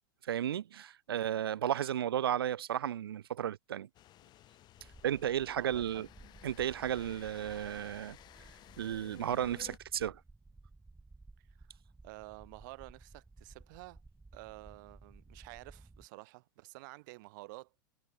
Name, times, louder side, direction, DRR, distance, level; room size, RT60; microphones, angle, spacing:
voice 1, 0.2-3.9 5.0-6.1 6.4-8.2 8.8-10.2, right 10 dB, 80° right, 0.7 m, -34 dB
voice 2, 1.1-1.4 5.6-6.1 11.4-11.8 12.0-14.0 14.3-17.8, right 23 dB, 55° right, 3.1 m, -51 dB
sound 1, 3.9-9.8, left 14 dB, 35° left, 7.2 m, -56 dB
sound 2, 4.8-16.1, right 3 dB, 10° right, 6.7 m, -57 dB
hypercardioid pair, 110°, 12 cm